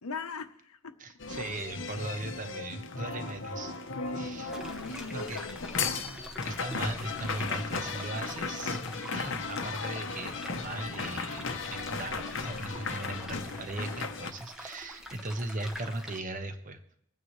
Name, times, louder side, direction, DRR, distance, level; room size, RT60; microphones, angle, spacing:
voice 1, 0.0-0.9 1.4-1.5 4.0-5.7, left 3 dB, 85° left, 9 dB, 1.0 m, -39 dB
voice 2, 1.0-3.7 4.2-4.5 5.1-5.4 6.4-8.8 9.1-16.8, right 2 dB, 35° right, 7 dB, 1.0 m, -38 dB
sound 1, 1.2-14.3, left 4 dB, 55° left, 0.9 m, -36 dB
sound 2, 4.5-16.2, equal, 5° right, 1.0 m, -46 dB
22.5 x 9.2 x 3.2 m, 0.73 s
head